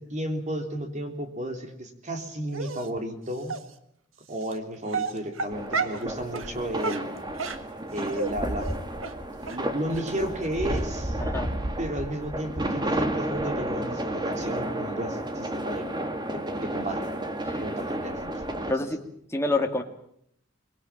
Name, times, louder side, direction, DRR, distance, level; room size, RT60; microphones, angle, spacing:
voice 1, 0.0-3.5 4.3-7.1 7.4-7.5 7.9-8.7 9.5-11.2 11.8-15.9 16.3-17.1 17.6-18.8, right 1 dB, 35° right, 5 dB, 3.4 m, -33 dB
Dog, 2.5-2.9 3.5-3.6 4.4-4.5 4.9-6.0 6.3-6.5 6.8-8.3 8.6-8.7 9.0-9.1 9.5-9.6 9.9-10.0 10.4-10.5 10.8-10.9, right 4 dB, 85° right, 1.7 m, -31 dB
sound 1, 5.5-18.7, right 1 dB, 20° right, 2.0 m, -31 dB
voice 2, 18.7-19.0 19.3-19.8, left 2 dB, 15° left, 3 dB, 2.3 m, -27 dB
24.5 x 22.0 x 7.4 m, 0.71 s
head